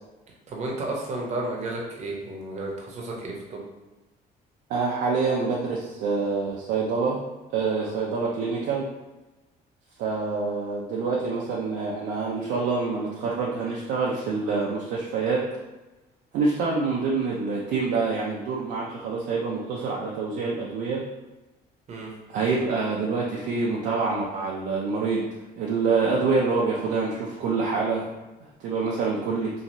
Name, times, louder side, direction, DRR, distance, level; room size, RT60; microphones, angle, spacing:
voice 1, 0.5-3.6 7.8-7.9 21.9-22.1 28.9-29.0, right 2 dB, 40° right, -2 dB, 0.7 m, -32 dB
voice 2, 4.7-7.2 7.5-8.9 10.0-15.4 16.3-21.0 22.3-25.3 25.6-28.1 28.6-29.5, right 4 dB, 80° right, -3 dB, 0.5 m, -26 dB
3.0 x 2.5 x 2.6 m, 1.1 s
cardioid pair, 110°, 17 cm